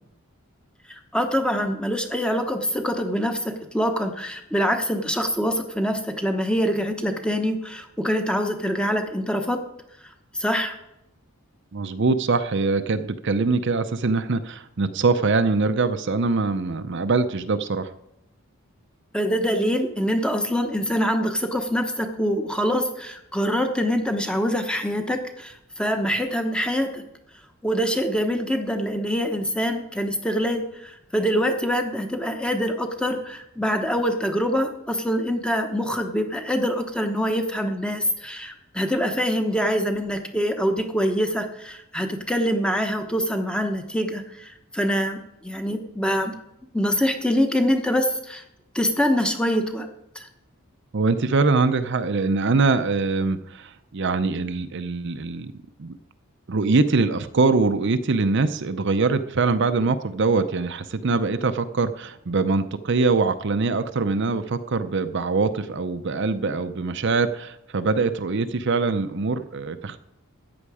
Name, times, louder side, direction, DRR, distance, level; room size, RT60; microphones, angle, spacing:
voice 1, 0.9-9.6 10.0-10.7 19.1-27.0 27.6-46.3 46.7-48.4 48.7-49.9 50.1-50.3, equal, 5° left, 5 dB, 1.0 m, -25 dB
voice 2, 11.7-17.9 50.9-55.5 55.8-56.0 56.5-70.0, right 3 dB, 55° right, 10 dB, 0.6 m, -23 dB
14.0 x 9.5 x 4.9 m, 0.84 s
head